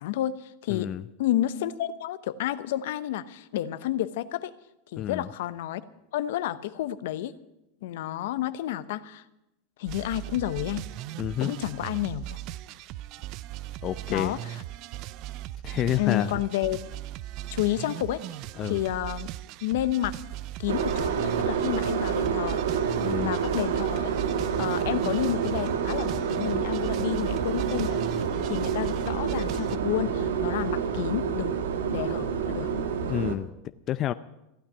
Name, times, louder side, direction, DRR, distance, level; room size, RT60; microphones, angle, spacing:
voice 1, 0.0-0.9 1.2-4.5 4.9-5.8 6.1-7.3 7.8-9.2 9.8-10.8 11.4-12.3 14.1-14.4 16.0-16.8 17.5-18.2 18.7-19.3 19.6-20.2 20.6-22.6 23.2-24.1 24.6-28.0 28.5-31.6 31.9-32.7, left 13 dB, 75° left, 13 dB, 0.9 m, -30 dB
voice 2, 0.7-1.0 5.0-5.3 11.2-11.5 13.8-14.4 15.6-16.4 18.6-18.8 23.0-23.4 33.1-33.5 33.9-34.1, left 12 dB, 40° left, 11 dB, 0.5 m, -29 dB
sound 1, 9.9-29.8, right 14 dB, 55° right, 0.5 m, -38 dB
sound 2, 20.7-33.4, right 7 dB, 85° right, 1.5 m, -28 dB
15.5 x 8.9 x 9.9 m, 0.91 s
hypercardioid pair, 110°, 0 cm